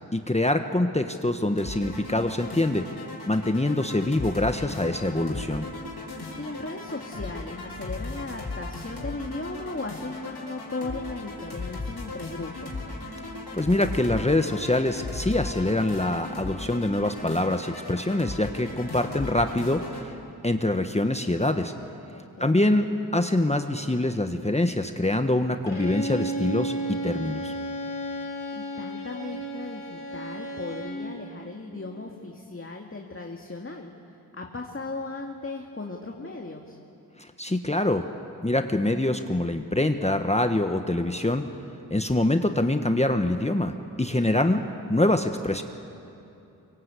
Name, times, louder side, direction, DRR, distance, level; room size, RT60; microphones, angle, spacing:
voice 1, 0.1-2.9 3.3-5.6 13.5-20.1 20.4-21.7 22.4-26.7 27.0-27.5 37.2-38.1 38.4-41.4 41.9-44.6 44.9-45.6, left 1 dB, 15° left, 6 dB, 1.3 m, -25 dB
sound 1, 1.6-20.1, left 3 dB, 75° left, 5.2 m, -37 dB
voice 2, 6.1-12.9 22.1-22.8 28.5-36.8 44.3-45.0, left 3 dB, 30° left, 1 dB, 2.1 m, -37 dB
Bowed string instrument, 25.7-31.1, right 1 dB, 55° left, 7.2 m, -33 dB
23.5 x 23.0 x 8.4 m, 2.8 s
cardioid pair, 45°, 39 cm